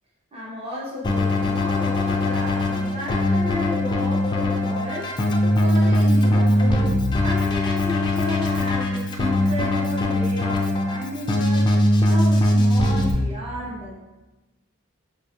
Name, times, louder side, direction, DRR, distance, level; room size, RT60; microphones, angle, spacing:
voice 1, 0.3-5.1 5.6-6.9 7.2-11.7 12.0-14.0, left 1 dB, 25° right, -5 dB, 0.6 m, -33 dB
Keyboard (musical), 1.0-13.1, left 1 dB, 20° left, 0.3 m, -21 dB
4.7 x 2.3 x 2.7 m, 1.1 s
head